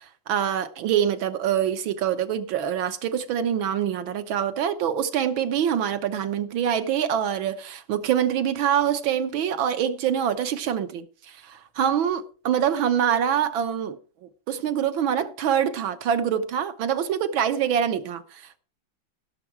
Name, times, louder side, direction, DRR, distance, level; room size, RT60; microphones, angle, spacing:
voice 1, 0.0-14.0 14.5-18.6, right 9 dB, 75° right, 1.9 m, -25 dB
16.0 x 7.2 x 4.5 m
omnidirectional pair, 2.2 m